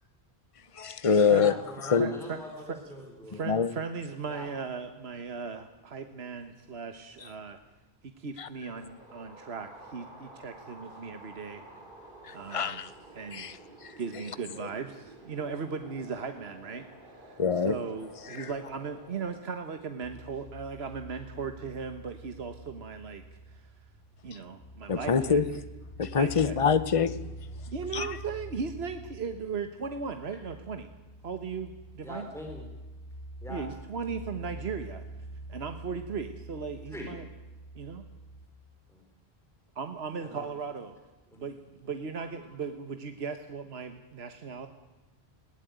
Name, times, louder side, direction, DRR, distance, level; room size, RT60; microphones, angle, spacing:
voice 1, 0.8-1.5 1.8-2.1 3.5-3.7 8.4-8.5 12.2-12.9 13.3-13.5 13.8-13.9 17.4-17.7 18.4-18.5 24.9-25.4 26.0-27.1 27.9-28.2, left 6 dB, 35° left, 14 dB, 0.9 m, -25 dB
voice 2, 1.3-3.6 4.3-4.5 32.0-32.7 33.4-33.7 36.9-37.1 40.2-40.5 41.3-41.4 42.2-42.5, left 1 dB, ahead, 0 dB, 3.7 m, -43 dB
voice 3, 2.0-2.4 2.7-2.8 3.2-7.6 8.0-11.6 12.3-13.5 14.0-23.7 24.2-25.4 26.1-26.6 27.7-30.9 31.2-32.3 33.5-35.0 35.5-37.3 37.7-38.0 39.7-41.0 41.4-44.7, right 5 dB, 75° right, 8 dB, 1.5 m, -37 dB
sound 1, 8.6-19.4, right 1 dB, 55° right, 3.8 m, -51 dB
sound 2, 20.0-38.5, right 1 dB, 65° left, 3.5 m, -45 dB
20.5 x 17.0 x 9.3 m, 1.1 s
omnidirectional pair, 1.1 m